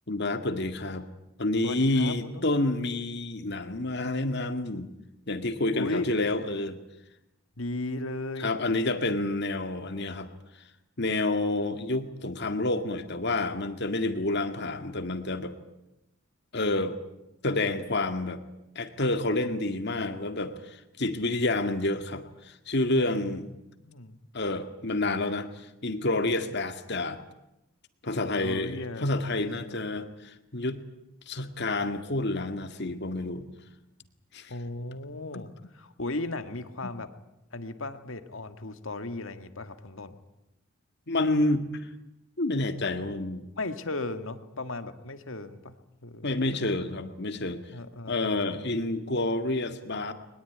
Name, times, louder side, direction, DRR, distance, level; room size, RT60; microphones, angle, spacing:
voice 1, 0.1-1.1 1.4-4.9 5.3-6.8 8.4-10.3 11.0-15.5 16.5-17.0 17.4-18.4 18.8-23.5 24.3-27.2 28.0-30.8 31.3-33.4 34.3-34.5 35.3-35.4 41.1-41.9 42.4-43.5 46.2-47.6 48.1-50.1, left 2 dB, 55° left, 9 dB, 2.0 m, -29 dB
voice 2, 1.6-2.5 5.7-6.1 7.6-8.5 23.2-23.3 23.8-24.2 28.1-29.1 29.3-29.8 34.5-37.1 37.5-40.1 43.6-45.7 46.0-46.3 47.7-48.7, left 2 dB, 70° left, 9 dB, 1.9 m, -36 dB
22.0 x 20.5 x 9.6 m, 0.90 s
head